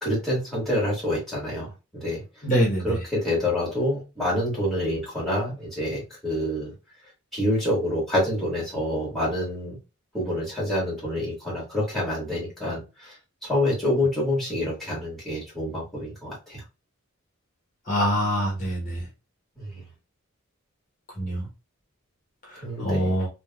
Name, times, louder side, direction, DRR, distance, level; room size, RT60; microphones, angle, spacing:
voice 1, 0.0-2.2 2.8-6.7 7.3-9.8 10.1-13.1 13.4-16.6 19.6-19.8 22.6-23.1, left 1 dB, ahead, -5 dB, 1.6 m, -27 dB
voice 2, 2.4-3.0 17.9-19.0 21.2-21.4 22.8-23.3, equal, 40° left, -3 dB, 1.0 m, -24 dB
3.3 x 2.3 x 2.3 m, 0.28 s
head